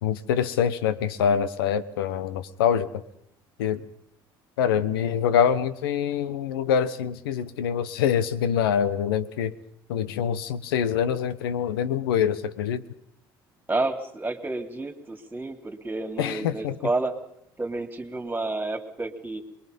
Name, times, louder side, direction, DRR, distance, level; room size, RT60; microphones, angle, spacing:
voice 1, 0.0-2.9 3.6-3.8 4.6-9.5 9.9-12.8 16.2-16.8, left 8 dB, 85° left, 14 dB, 1.1 m, -25 dB
voice 2, 13.7-17.1 17.6-19.4, right 2 dB, 15° right, 5 dB, 3.2 m, -30 dB
23.0 x 22.0 x 5.4 m, 0.76 s
hypercardioid pair, 65°, 12 cm